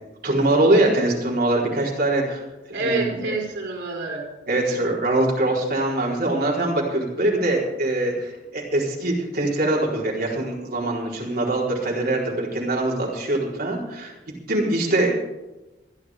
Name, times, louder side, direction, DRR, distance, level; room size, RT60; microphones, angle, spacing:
voice 1, 0.2-2.4 2.8-3.2 4.5-14.1 14.5-15.1, right 2 dB, 55° right, -3 dB, 4.2 m, -23 dB
voice 2, 2.7-4.2, right 3 dB, 80° right, -2 dB, 4.1 m, -27 dB
27.0 x 10.0 x 3.6 m, 1.1 s
head